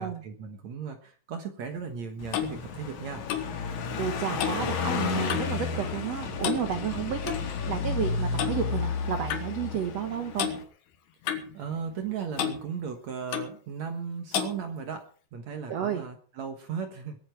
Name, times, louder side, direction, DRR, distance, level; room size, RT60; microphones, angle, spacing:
voice 1, 0.0-3.3 11.5-15.1 15.3-17.3, right 6 dB, 60° right, 6 dB, 1.9 m, -36 dB
Clock, 1.8-5.6 5.9-6.2 6.4-7.4 8.4-8.6 9.3-9.5 10.4-10.6 11.3-12.1 12.4-12.6 13.3-13.6 14.3-14.6, left 9 dB, 70° left, 3.3 m, -33 dB
Car passing by, 2.2-10.6, left 5 dB, 55° left, 2.7 m, -32 dB
voice 2, 4.0-7.4 7.7-10.5 15.7-16.0, right 8 dB, 85° right, 7 dB, 1.4 m, -31 dB
21.5 x 8.9 x 4.6 m, 0.42 s
omnidirectional pair, 4.8 m